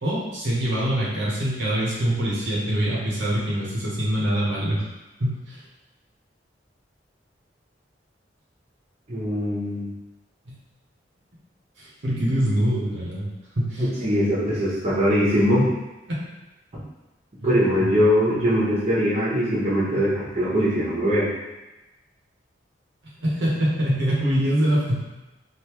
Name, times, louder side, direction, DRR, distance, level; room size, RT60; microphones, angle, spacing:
voice 1, 0.0-4.9 5.2-5.6 10.5-10.6 11.8-13.3 13.6-13.9 16.1-16.2 23.2-25.0, equal, 85° right, -6 dB, 1.0 m, -24 dB
voice 2, 9.1-9.9 13.8-15.7 16.7-16.8 17.4-21.3, equal, 35° right, -8 dB, 1.0 m, -21 dB
3.5 x 2.6 x 3.0 m, 1.0 s
head